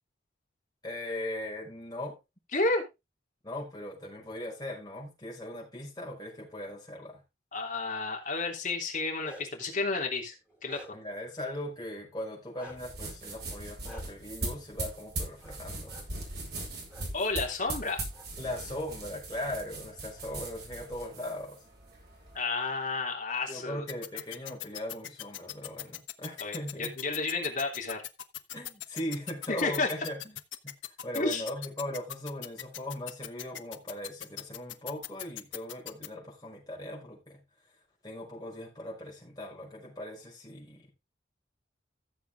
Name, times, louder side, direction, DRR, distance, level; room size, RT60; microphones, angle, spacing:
voice 1, 0.8-2.2 3.4-7.2 10.9-15.9 18.4-21.6 23.5-27.0 28.5-30.2 30.6-30.7 31.0-37.4 38.0-40.9, left 1 dB, 20° left, 5.5 m, -39 dB
voice 2, 2.5-2.8 7.5-10.3 10.6-10.8 17.1-18.0 22.3-23.9 26.4-28.0 29.5-29.9 31.1-31.4, left 3 dB, 45° left, 3.2 m, -31 dB
Bark, 8.9-9.7 10.2-11.2 12.6-12.8 13.8-14.0 15.4-15.6 15.9-16.0 16.9-17.0 17.4-18.3, equal, 5° right, 5.6 m, -49 dB
sound 1, 12.7-22.4, right 2 dB, 55° right, 5.4 m, -40 dB
sound 2, 23.9-36.1, left 12 dB, 80° left, 0.9 m, -39 dB
14.5 x 7.2 x 3.6 m
head